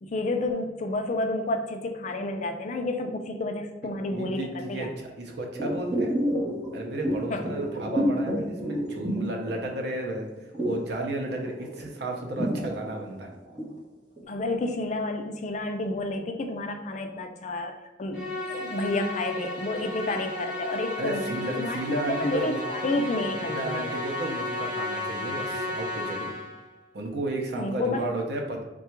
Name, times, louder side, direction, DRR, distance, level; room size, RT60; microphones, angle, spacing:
voice 1, 0.0-4.9 7.3-7.5 14.3-21.3 21.6-23.9 27.6-28.1, left 2 dB, 40° left, 5 dB, 0.4 m, -30 dB
voice 2, 3.8-6.2 6.7-10.3 10.6-13.3 21.0-22.6 23.3-26.3 26.9-28.6, right 2 dB, 65° right, 1 dB, 0.7 m, -33 dB
sound 1, 5.6-10.0 10.2-13.8 14.2-14.3, equal, 25° right, 1.1 m, -29 dB
Musical instrument, 18.1-26.7, left 2 dB, 5° right, 0.8 m, -33 dB
3.6 x 2.3 x 4.4 m, 1.1 s
head